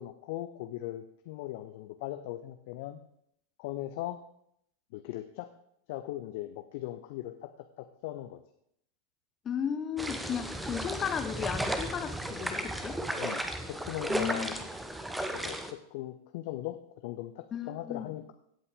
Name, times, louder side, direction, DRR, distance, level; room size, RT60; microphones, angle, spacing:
voice 1, 0.0-3.0 3.6-4.2 4.9-5.5 5.9-7.5 7.8-8.4 13.2-13.4 13.7-14.6 15.3-18.3, left 14 dB, 50° left, 8 dB, 0.7 m, -39 dB
voice 2, 9.4-13.0 14.1-14.5 17.5-18.1, left 8 dB, 25° left, 9 dB, 1.1 m, -35 dB
sound 1, 10.0-15.7, right 1 dB, 5° right, 1.0 m, -35 dB
16.5 x 8.2 x 3.6 m, 0.73 s
figure-of-eight pair, 90°, 0 cm